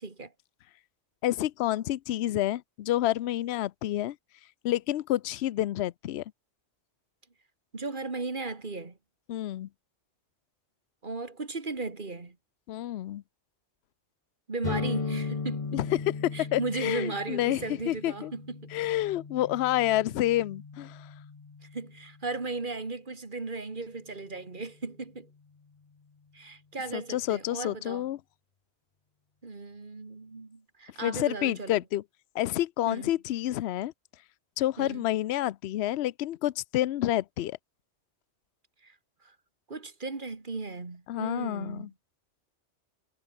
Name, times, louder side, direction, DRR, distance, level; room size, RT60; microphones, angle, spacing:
voice 1, 1.2-4.2 4.6-6.2 9.3-9.7 12.7-13.2 15.7-18.3 18.7-21.1 26.9-28.2 31.0-32.0 32.3-33.9 34.6-37.6 41.1-41.9, left 14 dB, 70° left, 0.8 m, -29 dB
voice 2, 7.7-9.0 11.0-12.4 14.5-15.8 16.3-18.7 21.6-25.3 26.3-28.1 29.4-31.8 32.9-33.1 34.8-35.1 38.8-39.0 39.2-39.4 39.7-41.9, right 3 dB, 45° right, 2.2 m, -36 dB
sound 1, 14.6-22.2, left 4 dB, 35° left, 1.0 m, -37 dB
omnidirectional pair, 1.2 m